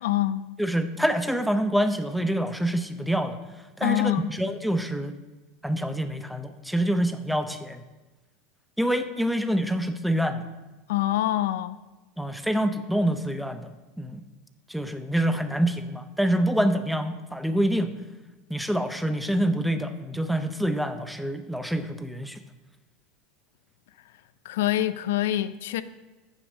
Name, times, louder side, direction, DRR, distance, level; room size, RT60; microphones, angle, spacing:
voice 1, 0.0-0.4 3.8-4.3 10.9-11.8 24.4-25.8, left 13 dB, 75° left, 0.4 m, -25 dB
voice 2, 0.6-3.4 3.8-5.2 5.6-7.8 8.8-10.5 12.2-13.7 14.0-14.2 14.7-17.9 18.5-22.4, right 1 dB, ahead, 0.6 m, -26 dB
7.1 x 6.8 x 5.3 m
hypercardioid pair, 95°, 0 cm